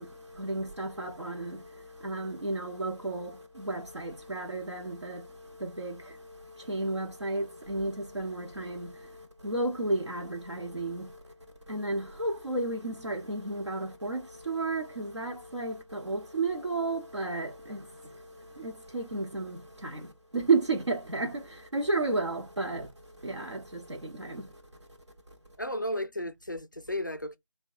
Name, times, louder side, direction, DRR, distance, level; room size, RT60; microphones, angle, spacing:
voice 1, 0.0-11.3 11.7-24.6, right 3 dB, 55° right, 0.9 m, -33 dB
voice 2, 25.6-27.4, left 1 dB, 35° left, 0.4 m, -34 dB
3.4 x 2.2 x 4.4 m
figure-of-eight pair, 165°, 17 cm